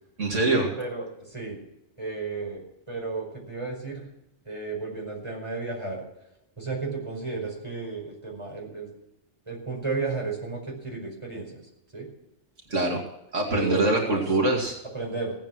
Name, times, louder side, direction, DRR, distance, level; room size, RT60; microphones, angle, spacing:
voice 1, 0.2-0.7 12.7-13.0 13.3-14.8, right 2 dB, 85° right, 0 dB, 2.8 m, -24 dB
voice 2, 0.8-1.6 2.0-4.1 4.5-6.0 6.6-8.9 9.5-11.6 11.9-12.1 13.5-14.2 14.9-15.3, right 3 dB, 25° right, -1 dB, 5.2 m, -33 dB
17.0 x 9.1 x 6.3 m, 0.87 s
omnidirectional pair, 1.2 m